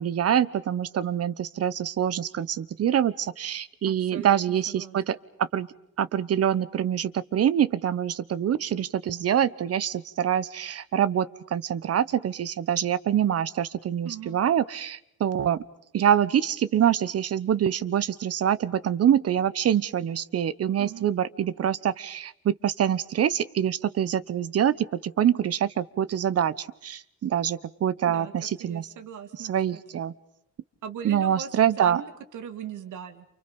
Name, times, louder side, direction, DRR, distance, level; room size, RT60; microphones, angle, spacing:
voice 1, 0.0-5.7 6.0-15.6 15.9-28.9 29.4-30.1 31.0-32.0, right 9 dB, 55° right, 17 dB, 1.1 m, -25 dB
voice 2, 3.8-5.0 14.0-14.4 20.8-21.1 28.1-28.3 28.6-30.0 30.8-33.3, right 8 dB, 90° right, 8 dB, 2.7 m, -40 dB
29.5 x 29.0 x 5.3 m, 0.72 s
cardioid pair, 135°, 30 cm